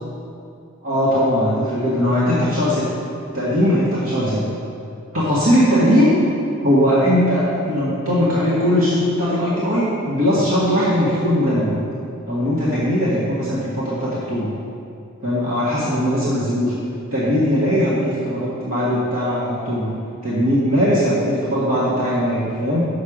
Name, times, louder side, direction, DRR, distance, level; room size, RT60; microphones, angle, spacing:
voice 1, 0.8-2.8 3.3-4.4 5.1-6.1 6.6-11.8 12.3-14.5 15.2-16.7 17.1-19.9 20.2-22.8, equal, 75° right, -8 dB, 1.7 m, -19 dB
7.1 x 6.4 x 5.0 m, 2.5 s
head